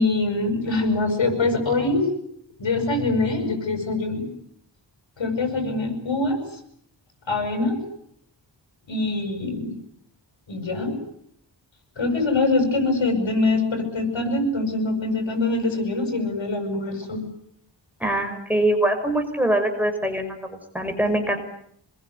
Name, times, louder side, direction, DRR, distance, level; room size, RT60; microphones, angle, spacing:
voice 1, 0.0-2.0 2.6-4.3 5.2-6.4 7.3-7.8 8.9-9.7 10.5-10.9 12.0-17.2, left 2 dB, 75° left, 6 dB, 7.8 m, -23 dB
voice 2, 18.0-21.4, right 1 dB, 5° right, 4 dB, 5.7 m, -23 dB
26.0 x 22.0 x 9.7 m, 0.71 s
wide cardioid pair, 95°, 45 cm